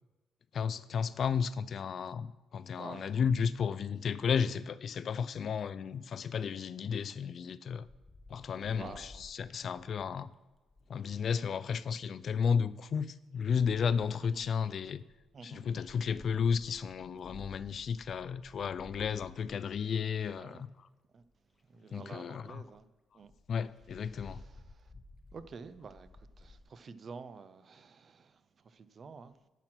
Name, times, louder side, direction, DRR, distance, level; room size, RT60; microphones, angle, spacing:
voice 1, 0.5-7.9 8.3-10.3 10.9-15.0 15.4-20.9 21.9-22.6 23.5-24.4, left 6 dB, 45° left, 0.3 m, -33 dB
voice 2, 2.8-3.2 8.7-9.2 9.7-9.8 14.3-14.4 15.3-15.6 20.4-20.6 21.1-21.2 21.7-22.8 23.1-23.3 24.1-24.9 25.3-26.1 26.4-29.4, right 5 dB, 40° right, 0.6 m, -49 dB
Wind, 7.8-11.3 12.4-12.9 13.6-20.6 21.2-21.3 21.5-21.6 22.0-22.1 22.3-22.4 22.7-22.8 23.3-26.6, left 2 dB, 20° left, 0.9 m, -55 dB
11.0 x 5.9 x 6.0 m
cardioid pair, 140°, 0 cm